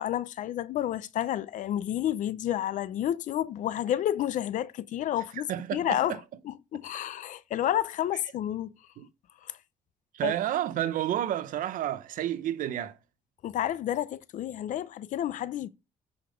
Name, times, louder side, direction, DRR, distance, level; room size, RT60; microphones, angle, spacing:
voice 1, 0.0-6.2 6.4-8.7 9.4-9.6 10.2-10.3 13.4-15.7, left 11 dB, 65° left, 0.6 m, -30 dB
voice 2, 5.5-6.2 9.0-9.1 10.1-13.0, right 11 dB, 75° right, 0.8 m, -30 dB
9.0 x 5.1 x 5.1 m
cardioid pair, 155°, 14 cm